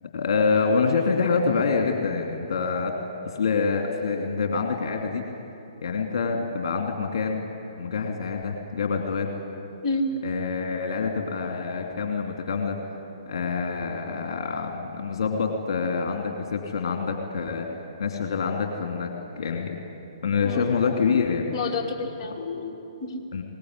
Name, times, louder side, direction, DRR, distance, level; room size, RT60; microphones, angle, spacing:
voice 1, 0.0-5.2 5.8-7.4 7.8-9.3 10.2-12.8 13.3-19.8 20.2-21.5 23.3-23.4, left 5 dB, 55° left, 3 dB, 2.6 m, -26 dB
voice 2, 9.8-10.2 20.4-20.7 21.5-23.2, left 2 dB, 30° left, -2 dB, 3.2 m, -29 dB
22.5 x 19.5 x 9.7 m, 2.8 s
figure-of-eight pair, 130°, 3 cm